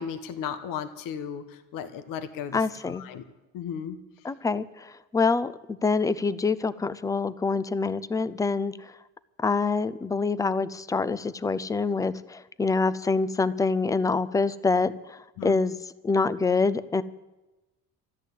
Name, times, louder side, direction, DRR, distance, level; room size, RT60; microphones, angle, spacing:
voice 1, 0.0-1.4 1.7-2.6 3.1-3.2 3.5-4.0 15.4-15.6, left 8 dB, 80° left, 9 dB, 1.3 m, -34 dB
voice 2, 2.5-3.0 4.2-9.0 9.4-17.0, left 4 dB, 10° left, 15 dB, 0.4 m, -26 dB
13.5 x 11.5 x 8.3 m, 1.1 s
cardioid pair, 160°, 33 cm